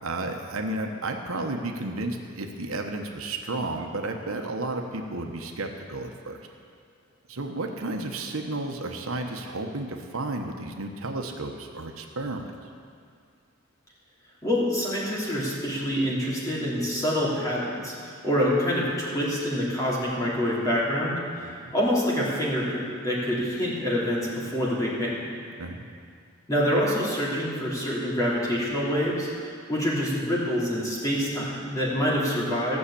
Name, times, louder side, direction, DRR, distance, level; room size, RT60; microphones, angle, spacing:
voice 1, 0.0-6.4 7.3-12.5 21.4-21.7 25.6-25.8, right 2 dB, 80° right, 3 dB, 1.1 m, -32 dB
voice 2, 14.4-25.2 26.5-29.3 29.7-32.8, equal, 15° left, -7 dB, 3.2 m, -26 dB
16.0 x 6.6 x 8.4 m, 2.3 s
head